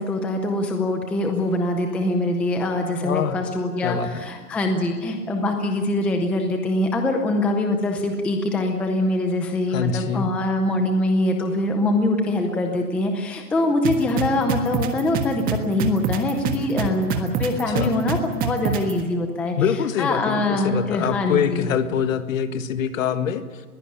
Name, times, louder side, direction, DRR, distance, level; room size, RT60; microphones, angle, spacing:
voice 1, 0.0-19.5 20.0-21.7, left 1 dB, 5° left, 4 dB, 0.6 m, -23 dB
voice 2, 3.0-3.4 3.8-4.2 9.7-10.3 17.5-17.9 19.6-23.6, left 8 dB, 55° left, 10 dB, 1.8 m, -25 dB
sound 1, 13.8-18.9, right 6 dB, 20° right, 1.5 m, -24 dB
21.5 x 16.0 x 8.7 m, 1.4 s
hypercardioid pair, 155°, 46 cm